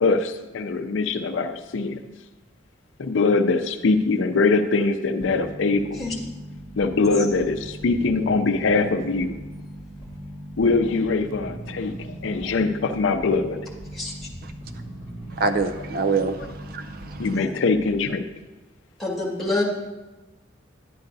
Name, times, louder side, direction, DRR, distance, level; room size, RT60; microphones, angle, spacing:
voice 1, 0.0-2.0 3.0-6.0 6.8-9.3 10.6-13.6 17.2-18.2, left 3 dB, 75° left, 0.5 m, -22 dB
sound 1, 5.2-18.1, equal, 25° right, 2.2 m, -39 dB
voice 2, 15.3-17.4, right 4 dB, 50° right, 0.4 m, -26 dB
voice 3, 19.0-19.6, left 2 dB, ahead, 1.8 m, -26 dB
11.5 x 9.4 x 2.7 m
head